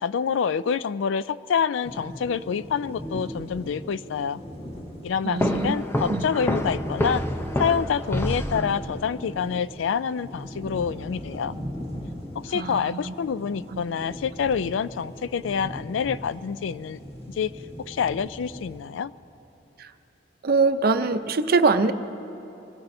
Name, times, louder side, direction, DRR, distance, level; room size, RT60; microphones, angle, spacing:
voice 1, 0.0-4.4 5.0-7.2 7.6-11.5 12.4-17.0 17.4-17.5 17.8-19.1, left 7 dB, 80° left, 16 dB, 0.3 m, -27 dB
sound 1, 1.8-18.8, equal, 35° left, 1.9 m, -39 dB
voice 2, 5.2-5.7 6.1-6.3 12.5-13.1 13.7-13.8 19.8-19.9 20.4-21.9, right 4 dB, 55° right, 9 dB, 0.6 m, -23 dB
sound 2, 5.4-9.1, left 1 dB, 15° left, 0.6 m, -28 dB
24.0 x 19.0 x 2.7 m, 3.0 s
head